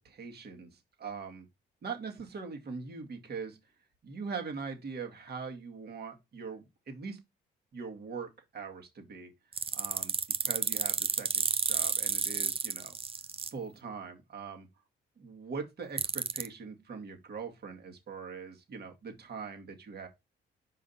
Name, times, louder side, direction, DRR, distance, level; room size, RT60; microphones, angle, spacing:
voice 1, 0.0-1.5 1.8-3.6 4.0-7.2 7.7-9.3 9.7-10.1 10.4-13.0 13.5-14.7 15.2-20.1, right 5 dB, 55° right, 2.0 m, -42 dB
sound 1, 9.5-13.5 16.0-16.5, right 5 dB, 30° right, 0.6 m, -31 dB
5.2 x 5.1 x 4.1 m
cardioid pair, 90°, 20 cm